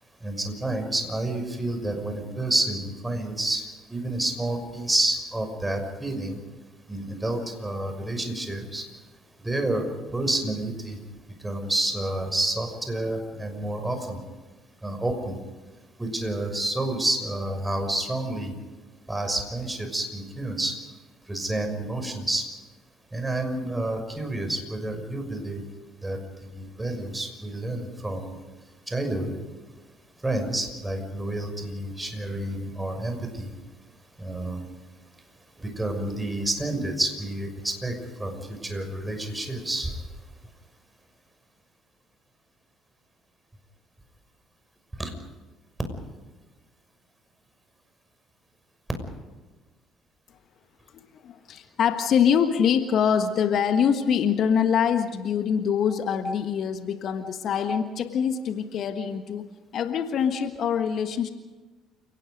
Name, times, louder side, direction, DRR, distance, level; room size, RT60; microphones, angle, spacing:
voice 1, 0.2-6.4 6.9-8.8 9.4-11.0 11.4-14.2 14.8-15.4 16.0-18.5 19.1-20.7 21.3-22.4 23.1-25.6 26.0-26.2 26.5-28.4 28.9-29.3 30.2-33.5 34.2-34.6 35.6-39.9 45.0-45.1, right 1 dB, 15° right, 6 dB, 6.1 m, -29 dB
voice 2, 51.1-59.4 59.7-61.3, left 7 dB, 55° left, 8 dB, 1.4 m, -24 dB
29.5 x 18.0 x 5.3 m, 1.3 s
hypercardioid pair, 55°, 0 cm